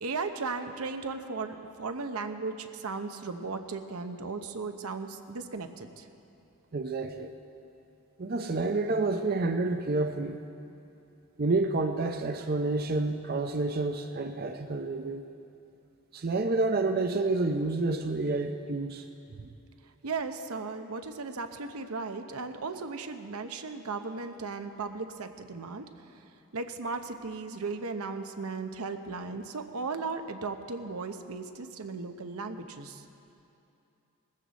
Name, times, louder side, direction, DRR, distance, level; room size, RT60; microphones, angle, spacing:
voice 1, 0.0-6.1 20.0-25.8 26.1-26.2 26.5-33.0, right 4 dB, 85° right, 7 dB, 0.8 m, -36 dB
voice 2, 6.7-7.3 8.2-10.4 11.4-15.2 16.1-19.0 19.4-19.5, right 3 dB, 45° right, 6 dB, 0.5 m, -29 dB
20.0 x 15.0 x 4.1 m, 2.8 s
head